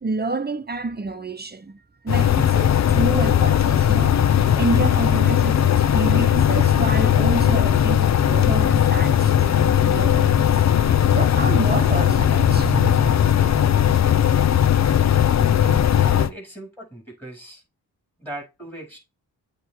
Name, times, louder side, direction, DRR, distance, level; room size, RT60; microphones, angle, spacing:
voice 1, 0.0-14.0, right 3 dB, 25° right, 1.0 m, -29 dB
sound 1, 2.1-16.3, left 10 dB, 45° left, 0.6 m, -18 dB
voice 2, 15.6-17.6 18.2-19.0, right 2 dB, 5° left, 4.6 m, -38 dB
8.1 x 3.3 x 4.6 m
supercardioid pair, 50°, 37 cm